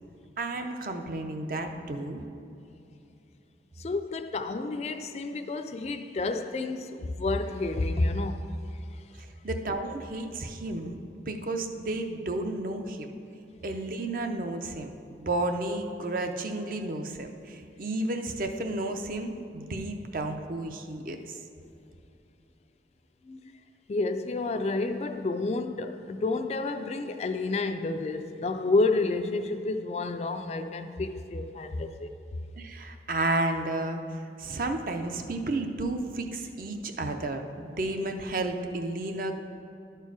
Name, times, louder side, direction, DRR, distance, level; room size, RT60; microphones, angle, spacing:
voice 1, 0.4-2.2 9.4-13.1 13.6-21.4 32.6-39.3, right 2 dB, 50° right, 0.5 m, -32 dB
voice 2, 3.8-8.5 23.3-23.4 23.9-32.1, left 3 dB, 35° left, 0.3 m, -30 dB
11.5 x 4.5 x 4.7 m
head